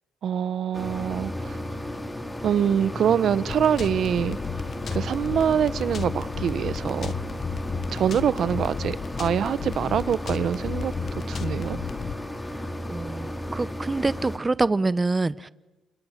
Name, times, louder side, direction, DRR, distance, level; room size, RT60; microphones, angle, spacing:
voice 1, 0.2-1.6 2.4-4.4 4.9-7.1 7.9-10.9 11.3-11.8, right 8 dB, 65° right, 17 dB, 1.1 m, -25 dB
sound 1, 0.7-14.4, left 1 dB, 10° left, 3.0 m, -34 dB
sound 2, 3.5-12.1, left 7 dB, 55° left, 1.5 m, -34 dB
voice 2, 12.9-15.5, right 3 dB, 25° right, 17 dB, 0.9 m, -25 dB
29.0 x 28.0 x 7.4 m, 1.1 s
cardioid pair, 90°, 0 cm